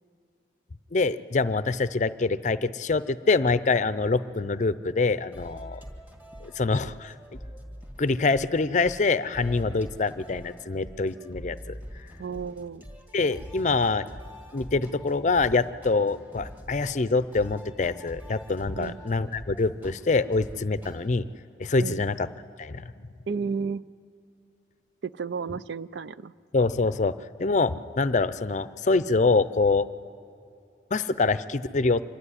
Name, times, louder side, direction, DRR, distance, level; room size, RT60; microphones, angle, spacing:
voice 1, 0.9-5.8 6.4-7.1 8.0-11.8 13.1-14.1 14.5-21.3 21.6-22.3 22.6-22.9 26.5-29.9 30.9-32.0, left 3 dB, 40° left, 14 dB, 0.5 m, -25 dB
sound 1, 5.3-21.1, equal, 10° right, 1.8 m, -44 dB
voice 2, 12.2-12.8 18.8-19.0 21.8-22.0 23.3-23.8 25.0-26.3, right 5 dB, 75° right, 16 dB, 0.5 m, -32 dB
25.5 x 12.5 x 9.8 m, 2.6 s
head